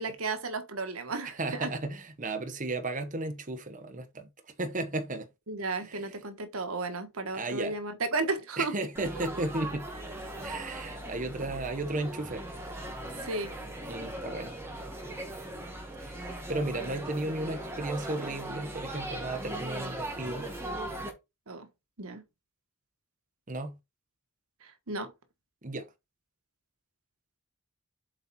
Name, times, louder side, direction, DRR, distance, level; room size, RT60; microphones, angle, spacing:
voice 1, 0.0-1.7 5.5-8.7 9.1-9.2 13.2-13.5 21.5-21.7 22.0-22.2 24.6-25.1, right 3 dB, 90° right, 1.4 m, -34 dB
voice 2, 1.3-4.3 4.6-5.3 5.8-6.1 7.3-7.8 8.6-9.9 10.4-12.5 13.9-14.6 16.0-20.5 23.5-23.8 25.6-25.9, right 2 dB, 40° right, 1.0 m, -34 dB
Laughter / Chatter / Crowd, 8.9-21.1, right 1 dB, 10° right, 1.9 m, -39 dB
7.7 x 4.2 x 4.2 m
head